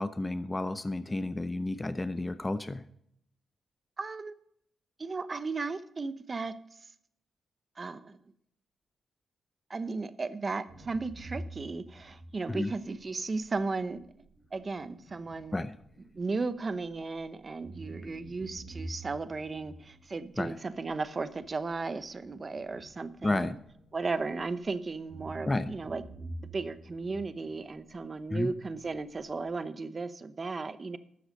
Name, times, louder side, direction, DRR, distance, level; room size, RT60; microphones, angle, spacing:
voice 1, 0.0-2.8 12.5-12.7 15.5-15.7 20.4-20.5 23.2-23.6 25.5-25.7 28.3-28.5, left 2 dB, 20° left, 12 dB, 0.6 m, -31 dB
voice 2, 4.0-4.3 5.0-6.6 7.8-8.2 9.7-14.1 14.5-15.6 16.1-23.5 23.9-26.0 26.5-31.0, right 3 dB, 35° right, 13 dB, 0.8 m, -35 dB
sound 1, 10.7-17.2 17.6-24.7 25.1-29.5, right 1 dB, 90° right, 5.1 m, -48 dB
13.0 x 7.9 x 5.3 m, 0.71 s
cardioid pair, 90°, 0 cm